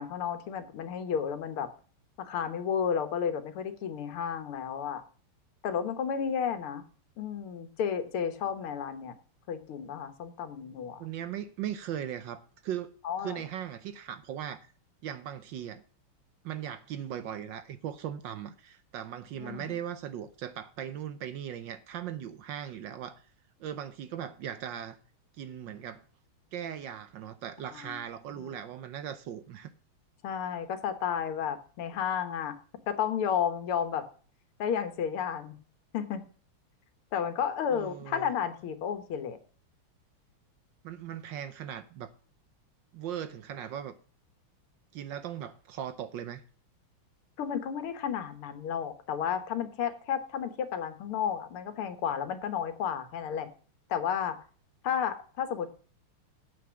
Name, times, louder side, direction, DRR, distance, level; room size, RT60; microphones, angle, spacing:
voice 1, 0.0-1.7 2.2-5.0 5.6-6.8 7.2-9.1 9.5-11.0 13.0-13.4 19.4-19.8 27.7-28.0 30.2-32.5 32.9-34.0 34.6-35.6 35.9-36.2 37.1-39.4 47.4-53.5 53.9-54.4 54.8-55.7, left 8 dB, 80° left, 2.1 m, -32 dB
voice 2, 11.0-12.9 13.2-14.6 15.0-15.8 16.4-23.2 23.6-25.0 25.4-26.0 26.5-29.7 37.7-38.3 40.8-42.1 42.9-43.9 44.9-46.4, right 10 dB, 70° right, 1.2 m, -38 dB
8.7 x 7.3 x 7.0 m
omnidirectional pair, 2.4 m